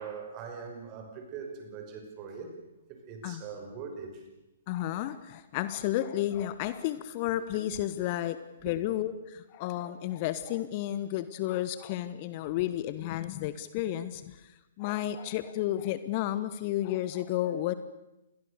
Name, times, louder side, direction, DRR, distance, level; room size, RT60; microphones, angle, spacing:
voice 1, 0.0-2.5 2.9-4.2 8.6-8.7, right 6 dB, 30° right, 5.6 m, -41 dB
voice 2, 4.7-17.7, left 13 dB, 35° left, 1.2 m, -32 dB
28.5 x 21.5 x 6.8 m
figure-of-eight pair, 125°, 0 cm